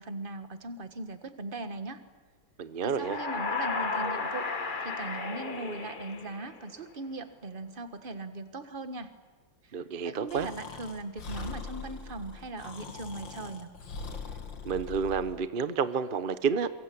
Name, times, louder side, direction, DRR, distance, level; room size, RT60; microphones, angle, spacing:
voice 1, 0.0-2.0 2.8-9.1 9.6-13.7, right 2 dB, 30° right, 9 dB, 1.4 m, -39 dB
voice 2, 2.6-3.2 9.7-10.5 14.6-16.7, right 6 dB, 50° right, 12 dB, 0.6 m, -30 dB
sound 1, 2.9-6.8, left 4 dB, 30° left, 1.0 m, -34 dB
Breathing, 10.3-15.4, left 4 dB, 65° left, 2.6 m, -42 dB
23.5 x 22.5 x 8.5 m, 1.3 s
omnidirectional pair, 2.2 m